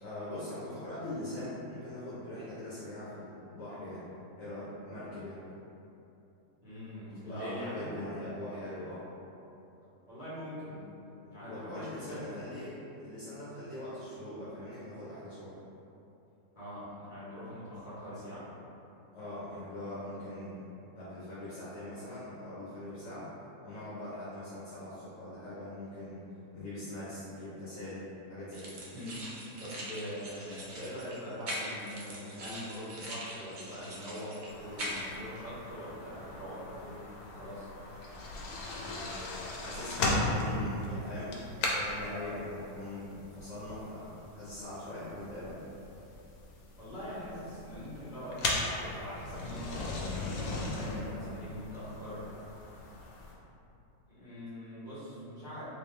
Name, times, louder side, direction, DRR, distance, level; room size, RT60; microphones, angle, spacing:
voice 1, 0.0-4.1 4.4-5.4 7.0-9.0 11.2-15.5 19.1-20.6 20.9-23.3 23.6-26.2 26.5-28.8 38.8-39.1 39.6-41.4 41.7-45.6 50.8-51.3, left 1 dB, 65° left, -11 dB, 1.2 m, -42 dB
voice 2, 6.6-8.0 10.1-10.9 11.3-12.3 16.5-18.5 28.9-29.2 29.6-37.7 46.8-52.3 54.1-55.6, equal, 30° left, -12 dB, 1.5 m, -43 dB
sound 1, 28.5-35.2, equal, 60° right, 0.5 m, -42 dB
sound 2, 34.5-53.3, left 2 dB, 85° left, 1.2 m, -38 dB
3.4 x 3.2 x 3.2 m, 2.8 s
omnidirectional pair, 1.6 m